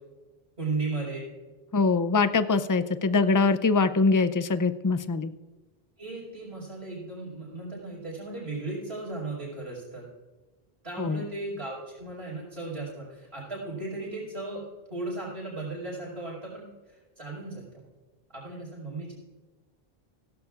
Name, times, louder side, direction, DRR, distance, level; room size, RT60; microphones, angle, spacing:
voice 1, 0.6-1.3 6.0-10.1 10.8-14.6 14.9-17.8 18.3-19.1, right 3 dB, 75° right, -6 dB, 5.3 m, -36 dB
voice 2, 1.7-5.3 11.0-11.2, left 4 dB, 30° left, 12 dB, 0.4 m, -23 dB
17.0 x 16.0 x 2.4 m, 1.2 s
omnidirectional pair, 1.0 m